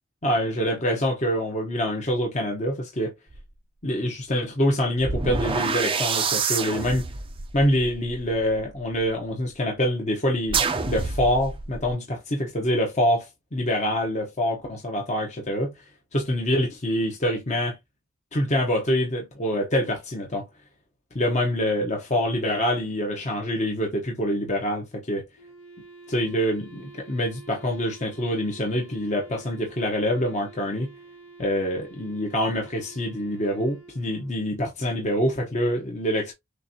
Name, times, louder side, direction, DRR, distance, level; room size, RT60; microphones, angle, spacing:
voice 1, 0.2-3.1 3.8-7.1 7.5-15.7 16.1-17.8 18.3-20.5 21.1-25.2 26.1-30.9 31.4-36.3, equal, 35° left, 1.0 m, -25 dB
sound 1, 3.3-3.5 5.0-9.1 10.5-11.9, right 5 dB, 25° right, 0.5 m, -28 dB
Wind instrument woodwind instrument, 25.4-34.6, right 4 dB, 70° left, 1.5 m, -48 dB
6.6 x 2.5 x 2.8 m
head